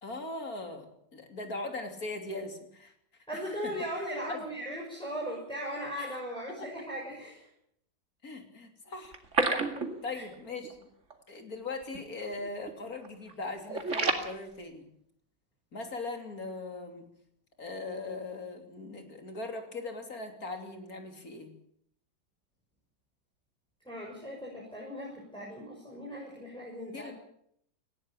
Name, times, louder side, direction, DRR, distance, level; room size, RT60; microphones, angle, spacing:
voice 1, 0.0-2.9 3.3-4.4 6.0-6.1 6.6-6.7 8.2-9.2 10.0-10.9 11.3-14.9 15.7-17.1 17.6-21.5 26.9-27.1, left 3 dB, 55° left, 5 dB, 3.6 m, -40 dB
voice 2, 3.3-7.5 10.1-10.2 23.8-27.1, equal, 5° left, -4 dB, 6.4 m, -38 dB
sound 1, 9.0-10.3 10.6-10.7 11.1-11.2 11.8-12.0 12.3-12.7 13.0-14.3, right 3 dB, 40° right, 2.6 m, -30 dB
19.0 x 16.5 x 8.9 m, 0.70 s
omnidirectional pair, 1.9 m